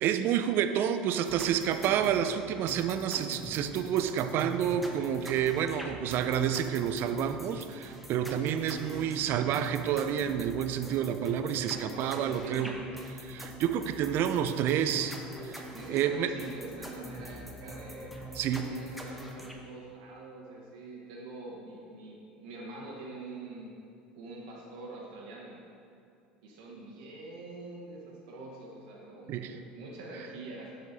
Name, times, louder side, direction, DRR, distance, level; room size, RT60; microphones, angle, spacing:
voice 1, 0.0-12.8 13.2-15.2 15.4-16.3 18.3-18.7 29.3-29.6, right 9 dB, 55° right, 9 dB, 0.5 m, -29 dB
sound 1, 1.3-19.5, right 1 dB, ahead, 1.0 m, -44 dB
voice 2, 11.9-12.8 15.7-23.8 24.1-25.6 26.4-30.8, right 2 dB, 75° right, -3 dB, 1.2 m, -45 dB
8.0 x 5.7 x 4.1 m, 2.4 s
hypercardioid pair, 75°, 4 cm